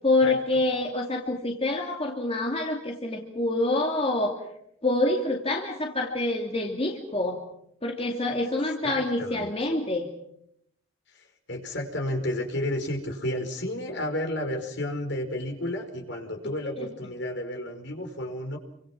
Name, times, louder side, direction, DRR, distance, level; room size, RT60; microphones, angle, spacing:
voice 1, 0.0-4.3 4.8-7.4 7.8-10.1, left 2 dB, 30° left, 1 dB, 2.4 m, -26 dB
voice 2, 8.8-9.5 11.1-18.6, left 1 dB, 55° left, 4 dB, 5.0 m, -32 dB
28.5 x 25.0 x 6.0 m, 0.73 s
head